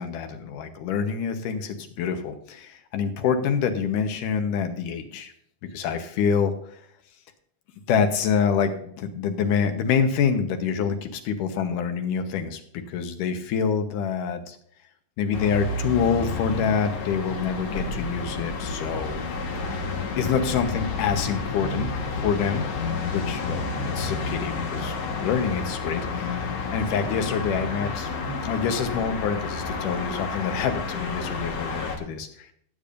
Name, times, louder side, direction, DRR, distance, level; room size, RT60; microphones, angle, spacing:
voice 1, 0.0-5.3 5.7-6.5 7.9-8.7 9.0-14.6 15.2-19.2 19.7-19.8 20.2-21.9 22.2-22.7 23.1-28.1 28.4-32.5, left 6 dB, 85° left, 7 dB, 2.7 m, -26 dB
sound 1, 15.3-32.0, left 3 dB, 60° left, 2.5 m, -30 dB
17.5 x 8.6 x 2.6 m, 0.66 s
omnidirectional pair, 3.6 m